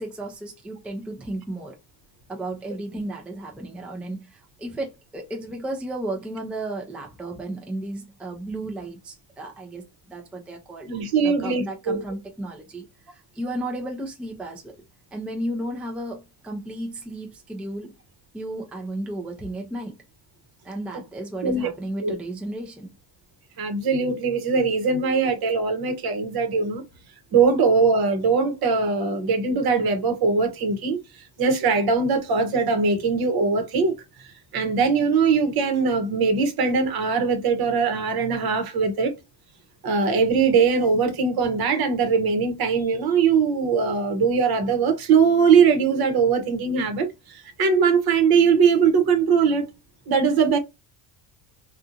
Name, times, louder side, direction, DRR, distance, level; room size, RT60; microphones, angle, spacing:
voice 1, 0.0-1.8 2.3-10.9 11.2-14.7 15.1-17.9 18.3-20.0 20.6-22.9, right 1 dB, 5° right, 0.5 m, -33 dB
voice 2, 10.9-12.0 21.4-21.7 22.0-22.2 23.6-26.8 27.3-31.0 31.4-33.9 34.5-39.1 39.8-49.7 50.1-50.6, right 5 dB, 50° right, 1.0 m, -21 dB
2.7 x 2.4 x 2.5 m
cardioid pair, 130°, 48 cm